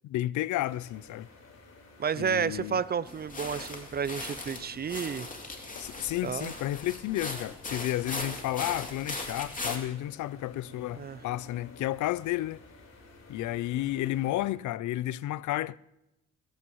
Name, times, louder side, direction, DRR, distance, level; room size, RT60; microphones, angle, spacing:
voice 1, 0.0-1.3 2.1-2.8 5.8-12.6 13.3-15.8, left 15 dB, 75° left, 0.5 m, -32 dB
sound 1, 0.6-14.5, left 3 dB, 60° left, 4.2 m, -52 dB
voice 2, 2.0-5.3 6.2-6.5 10.9-11.2, right 7 dB, 30° right, 0.5 m, -31 dB
sound 2, 3.1-9.8, left 2 dB, 25° left, 2.7 m, -39 dB
29.0 x 15.5 x 3.1 m
cardioid pair, 90°, 30 cm